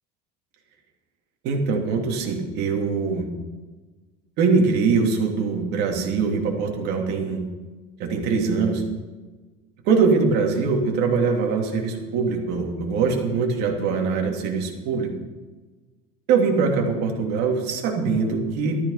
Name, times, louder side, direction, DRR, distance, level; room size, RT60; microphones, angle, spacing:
voice 1, 1.4-3.3 4.4-7.4 8.0-8.8 9.8-15.1 16.3-18.8, right 5 dB, 55° right, 1 dB, 3.0 m, -22 dB
13.5 x 13.5 x 5.7 m, 1.3 s
cardioid pair, 170°, 20 cm